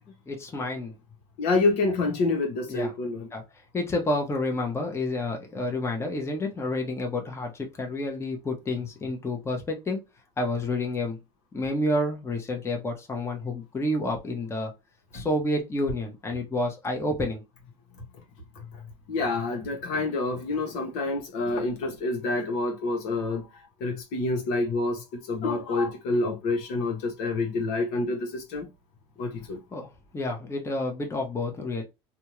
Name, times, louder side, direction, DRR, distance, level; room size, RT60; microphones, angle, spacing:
voice 1, 0.3-0.9 2.7-2.9 3.3-3.4 3.7-10.0 10.4-11.2 11.5-14.7 15.1-17.4 29.7-29.9 30.1-31.8, left 1 dB, 20° left, 0.9 m, -29 dB
voice 2, 1.4-3.3 15.1-15.3 18.0-18.1 18.5-18.8 19.1-23.5 23.8-28.7 29.2-29.6, left 3 dB, 75° left, 1.1 m, -28 dB
2.6 x 2.4 x 3.1 m
supercardioid pair, 95°, 13 cm